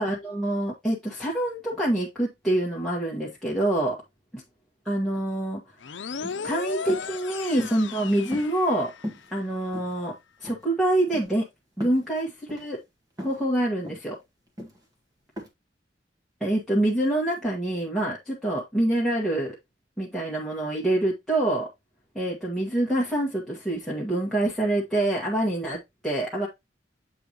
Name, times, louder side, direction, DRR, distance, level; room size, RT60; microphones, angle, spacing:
voice 1, 0.0-4.0 4.9-5.6 6.4-8.9 9.3-10.1 10.4-11.4 11.8-12.8 13.2-14.2 16.4-19.6 20.0-21.7 22.2-26.5, right 1 dB, ahead, 1.7 m, -26 dB
sound 1, 5.8-9.3, left 5 dB, 80° left, 0.6 m, -36 dB
sound 2, 6.1-6.4 6.9-7.1 7.6-7.9 8.3-8.8 9.0-9.3 9.7-10.2 10.4-10.7 11.1-11.3 11.8-12.0 12.5-12.7 13.2-13.4 13.8-14.1 14.6-14.8 15.4-15.5, equal, 20° right, 1.8 m, -38 dB
8.1 x 4.6 x 3.0 m
head